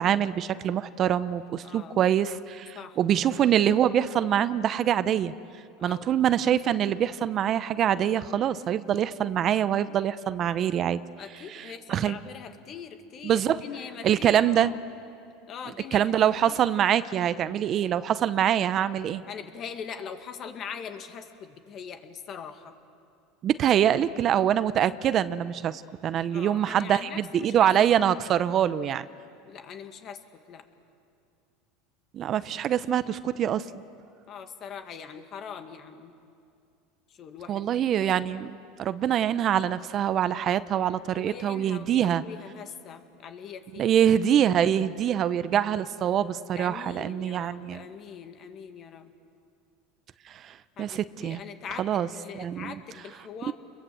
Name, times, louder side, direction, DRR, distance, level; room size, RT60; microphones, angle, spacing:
voice 1, 0.0-5.3 5.8-11.0 11.5-12.2 13.2-13.6 14.0-14.7 15.9-19.2 23.4-29.1 32.1-33.6 37.5-42.2 43.8-47.8 50.3-51.4 51.8-52.1 52.3-52.7 53.4-53.5, right 10 dB, 40° right, 14 dB, 0.7 m, -25 dB
voice 2, 1.6-2.1 2.7-3.1 5.8-6.4 11.2-14.8 15.5-16.6 19.3-22.7 26.3-27.7 29.4-30.7 34.3-36.1 37.1-37.9 41.1-43.9 46.5-49.1 50.8-53.5, left 7 dB, 45° left, 7 dB, 2.0 m, -42 dB
29.5 x 22.5 x 7.8 m, 2.4 s
supercardioid pair, 110°, 0 cm